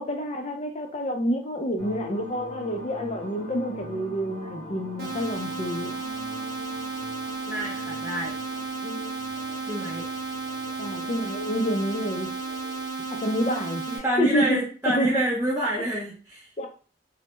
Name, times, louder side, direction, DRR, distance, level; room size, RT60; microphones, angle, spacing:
voice 1, 0.0-5.9 8.8-9.1 10.8-12.3 13.1-15.2 16.6-16.7, equal, 40° left, 4 dB, 0.4 m, -28 dB
sound 1, 1.8-12.9, left 1 dB, 85° left, 0.7 m, -43 dB
sound 2, 5.0-14.0, right 4 dB, 60° right, 0.6 m, -33 dB
voice 2, 7.5-8.4 9.7-10.1 13.9-16.5, right 1 dB, 15° right, -7 dB, 0.5 m, -27 dB
2.1 x 2.1 x 2.9 m, 0.38 s
head